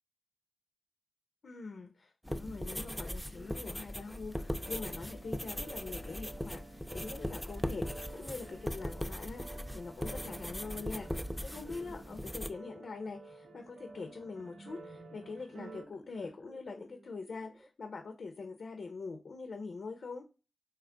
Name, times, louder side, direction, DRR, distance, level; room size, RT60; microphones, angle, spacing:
voice 1, 1.4-20.3, left 4 dB, 70° left, 0.4 m, -44 dB
sound 1, 2.2-12.5, equal, ahead, 0.3 m, -39 dB
sound 2, 4.3-15.9, right 3 dB, 85° right, 0.4 m, -53 dB
sound 3, 9.8-17.7, right 1 dB, 20° right, 0.7 m, -57 dB
3.0 x 2.2 x 3.6 m
cardioid pair, 40°, 0 cm